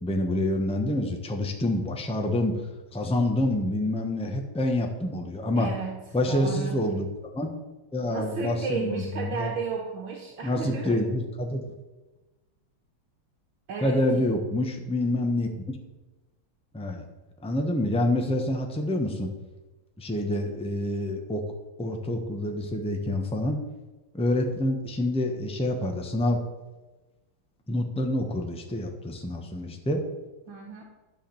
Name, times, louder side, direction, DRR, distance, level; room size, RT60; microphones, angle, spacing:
voice 1, 0.0-2.6 2.9-5.7 6.1-7.1 7.3-7.5 7.9-9.5 10.4-11.7 13.8-15.8 16.7-17.1 17.4-19.3 20.0-21.5 21.8-23.6 24.1-26.5 27.7-30.0, left 1 dB, 5° left, 3 dB, 0.6 m, -27 dB
voice 2, 5.6-6.0 6.3-6.8 8.1-11.0 13.7-14.3 30.5-30.8, right 5 dB, 75° right, -1 dB, 1.9 m, -33 dB
10.5 x 4.9 x 7.0 m, 1.1 s
omnidirectional pair, 2.2 m